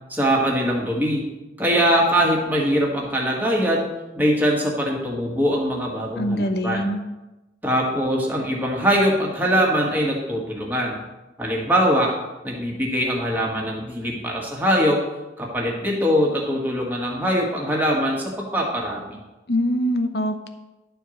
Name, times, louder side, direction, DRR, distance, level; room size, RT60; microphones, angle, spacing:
voice 1, 0.1-1.3 1.6-3.9 4.1-6.9 7.6-11.0 11.4-12.2 12.4-15.0 15.4-19.2, equal, 10° right, -2 dB, 1.6 m, -22 dB
voice 2, 6.2-7.0 19.5-20.5, equal, 65° left, 8 dB, 0.8 m, -23 dB
11.0 x 4.6 x 6.4 m, 1.0 s
head